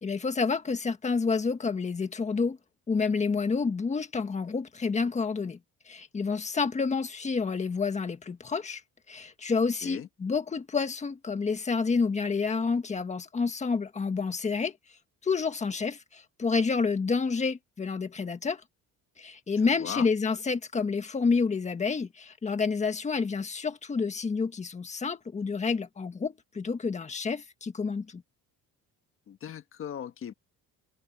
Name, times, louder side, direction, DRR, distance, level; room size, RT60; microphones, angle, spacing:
voice 1, 0.0-2.6 2.9-5.6 5.9-8.8 9.1-14.8 15.2-18.6 19.2-28.2, left 4 dB, 20° left, 1.6 m, -29 dB
voice 2, 19.6-20.1 29.3-30.3, left 9 dB, 35° left, 1.5 m, -38 dB
cardioid pair, 170°, 35 cm